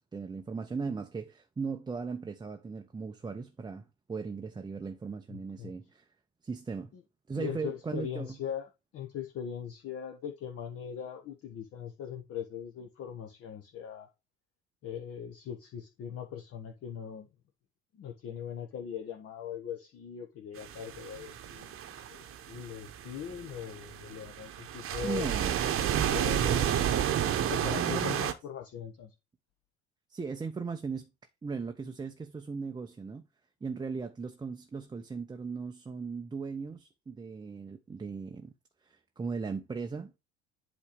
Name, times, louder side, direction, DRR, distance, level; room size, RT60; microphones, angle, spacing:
voice 1, 0.1-6.1 6.4-6.9 7.3-8.4 25.0-25.6 27.8-28.3 30.1-31.1 31.4-33.3 33.6-38.5 38.8-40.2, right 5 dB, 15° right, 0.6 m, -38 dB
voice 2, 5.3-5.7 6.9-7.0 7.4-14.1 14.8-17.3 17.9-26.8 27.5-29.1, left 8 dB, 45° left, 1.0 m, -40 dB
sound 1, 20.6-28.3, right 10 dB, 40° right, 0.9 m, -31 dB
8.2 x 3.0 x 4.9 m
hypercardioid pair, 65°, 32 cm